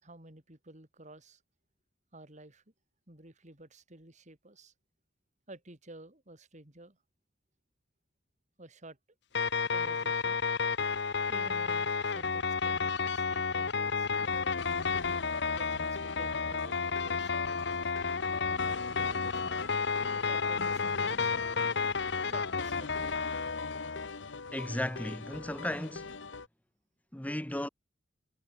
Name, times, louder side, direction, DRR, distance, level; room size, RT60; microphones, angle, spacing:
voice 1, 0.0-1.4 2.1-2.6 3.1-4.7 5.5-7.0 8.6-9.0 9.7-10.4 11.3-14.1 15.5-17.5 18.4-21.5 22.2-23.3, right 2 dB, 40° right, 3.6 m, -52 dB
sound 1, 9.3-24.1, left 5 dB, 65° left, 1.0 m, -31 dB
sound 2, 14.2-26.5, left 4 dB, 90° left, 1.1 m, -44 dB
voice 2, 24.5-26.2 27.1-27.7, left 1 dB, 10° left, 1.0 m, -35 dB
head